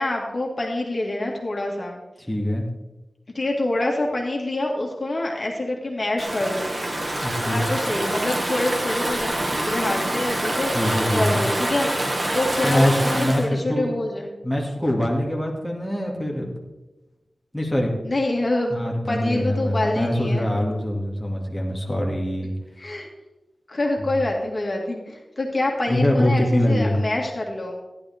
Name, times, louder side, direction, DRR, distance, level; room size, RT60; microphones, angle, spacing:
voice 1, 0.0-2.0 3.3-6.8 7.4-10.7 11.1-12.1 12.3-14.3 18.0-18.7 19.1-20.4 22.8-23.1 23.7-27.8, left 1 dB, 40° left, 0 dB, 2.2 m, -26 dB
voice 2, 2.3-2.6 7.2-7.7 10.7-11.4 12.6-13.9 14.4-16.5 17.5-17.9 18.7-22.5 25.9-27.0, left 1 dB, 5° left, -2 dB, 2.3 m, -23 dB
Stream / Ocean, 6.2-13.4, right 1 dB, 35° right, 2.0 m, -26 dB
15.0 x 11.0 x 3.6 m, 1.0 s
wide cardioid pair, 90°, 0 cm